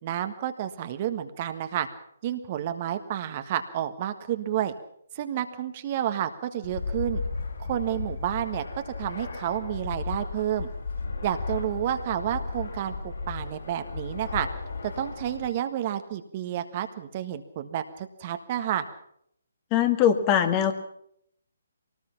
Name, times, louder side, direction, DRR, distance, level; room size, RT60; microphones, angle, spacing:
voice 1, 0.0-1.9 2.2-4.7 5.1-7.2 7.6-8.6 9.0-10.7 11.2-14.5 14.8-18.8, right 11 dB, 35° right, 8 dB, 1.5 m, -30 dB
Fixed-wing aircraft airplane, 6.6-15.5, left 4 dB, 65° left, 7.1 m, -35 dB
voice 2, 19.7-20.7, left 9 dB, 25° left, 7 dB, 1.8 m, -21 dB
23.5 x 19.0 x 5.9 m, 0.72 s
figure-of-eight pair, 140°, 0 cm